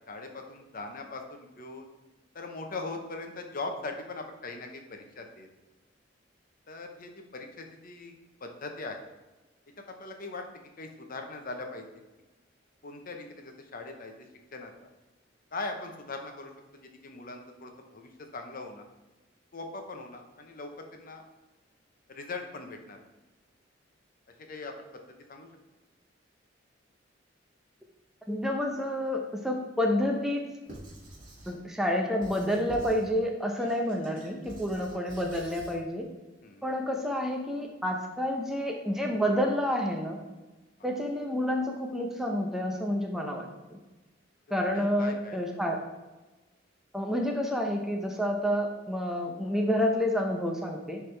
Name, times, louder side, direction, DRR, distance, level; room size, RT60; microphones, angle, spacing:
voice 1, 0.1-1.9 2.3-5.5 6.7-8.1 8.4-9.0 9.9-10.4 10.8-11.9 12.8-14.1 14.5-14.9 15.5-16.5 16.8-18.8 19.5-21.2 22.1-23.0 24.5-24.9 25.3-25.5 34.7-35.0 36.4-36.7 40.8-40.9 44.7-45.4, left 3 dB, 50° left, 4 dB, 0.8 m, -40 dB
voice 2, 28.3-30.4 31.5-36.0 36.6-40.2 40.8-43.8 44.5-45.8 46.9-51.0, equal, ahead, 1 dB, 0.6 m, -29 dB
Squeak / Writing, 30.7-31.6 32.2-33.1 33.6-35.8, right 1 dB, 45° right, 2.0 m, -47 dB
10.5 x 3.5 x 3.3 m, 1.1 s
head